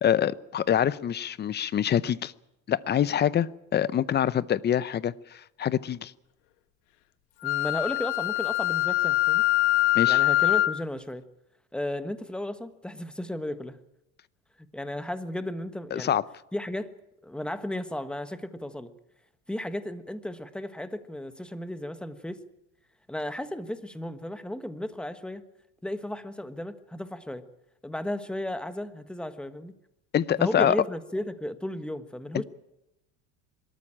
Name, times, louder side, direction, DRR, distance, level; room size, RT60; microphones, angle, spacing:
voice 1, 0.0-2.3 2.7-6.1 9.9-10.2 15.9-16.2 30.1-30.8, left 9 dB, 30° left, 19 dB, 0.8 m, -25 dB
Wind instrument woodwind instrument, 7.4-10.8, left 16 dB, 85° left, 1.2 m, -23 dB
voice 2, 7.4-9.4 10.1-11.2 11.7-13.8 14.7-16.2 16.5-16.9 17.2-18.9 19.5-22.4 23.1-25.4 25.8-27.4 27.8-29.7 30.4-32.4, left 1 dB, 5° left, 11 dB, 1.3 m, -34 dB
23.5 x 13.5 x 8.8 m, 0.89 s
supercardioid pair, 115°, 35 cm